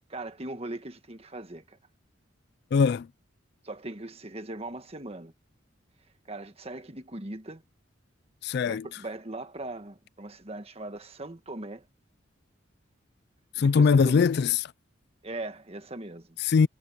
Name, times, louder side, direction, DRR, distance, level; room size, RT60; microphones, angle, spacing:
voice 1, 0.0-1.8 3.6-5.3 6.3-7.6 8.6-11.8 13.6-14.2 15.2-16.4, right 2 dB, 30° right, 1.5 m, -39 dB
voice 2, 2.7-3.1 8.4-8.9 13.6-14.6 16.4-16.7, left 5 dB, 55° left, 0.3 m, -21 dB
head